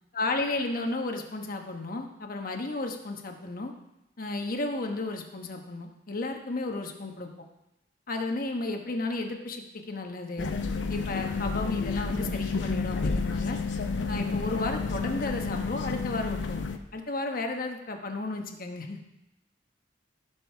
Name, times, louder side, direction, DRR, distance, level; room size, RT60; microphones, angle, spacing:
voice 1, 0.1-3.7 4.2-7.3 8.1-10.5 10.9-13.6 14.1-19.0, left 2 dB, 50° left, 4 dB, 1.1 m, -33 dB
sound 1, 10.4-16.8, left 4 dB, 75° left, 0.7 m, -30 dB
16.5 x 6.2 x 3.4 m, 0.89 s
head